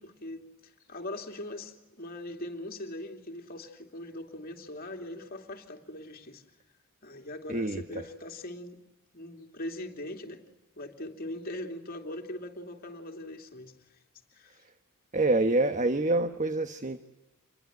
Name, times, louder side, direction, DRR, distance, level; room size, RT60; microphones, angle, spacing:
voice 1, 0.0-6.4 7.0-8.8 9.1-10.5 10.8-14.0 14.3-14.6, left 1 dB, 45° left, 3.0 m, -41 dB
voice 2, 7.5-8.0 15.1-17.0, right 2 dB, 35° right, 1.1 m, -26 dB
28.0 x 22.5 x 9.4 m
head